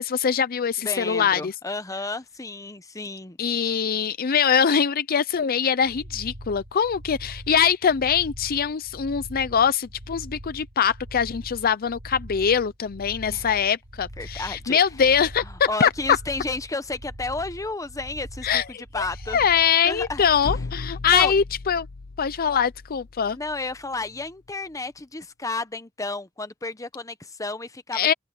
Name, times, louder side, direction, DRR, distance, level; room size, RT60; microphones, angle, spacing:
voice 1, 0.0-1.5 3.4-15.9 18.4-21.9 22.2-23.4 27.9-28.1, left 7 dB, 45° left, 0.5 m, -23 dB
voice 2, 0.8-3.4 13.3-13.5 14.2-14.8 15.4-19.5 19.8-20.2 21.1-21.3 23.4-28.1, left 3 dB, 15° left, 0.9 m, -32 dB
sound 1, 5.8-20.6, equal, 80° right, 5.7 m, -42 dB
sound 2, 20.4-24.3, left 3 dB, 80° left, 0.8 m, -37 dB
open air
head